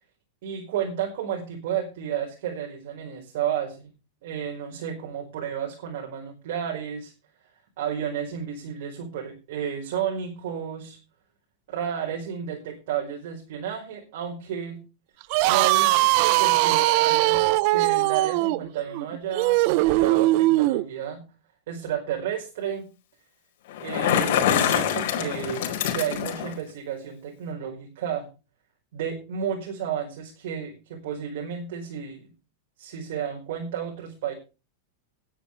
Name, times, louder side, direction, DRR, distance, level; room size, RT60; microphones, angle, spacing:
voice 1, 0.4-3.9 4.2-7.1 7.8-11.0 11.7-14.8 15.5-21.2 21.7-22.8 23.8-28.3 28.9-32.3 32.8-34.3, right 8 dB, 60° right, 1 dB, 5.0 m, -32 dB
sound 1, 15.2-20.8, right 19 dB, 40° right, 0.6 m, -21 dB
Bicycle, 23.7-26.6, left 9 dB, 55° left, 4.6 m, -25 dB
19.0 x 10.0 x 3.3 m, 0.31 s
supercardioid pair, 165°, 0 cm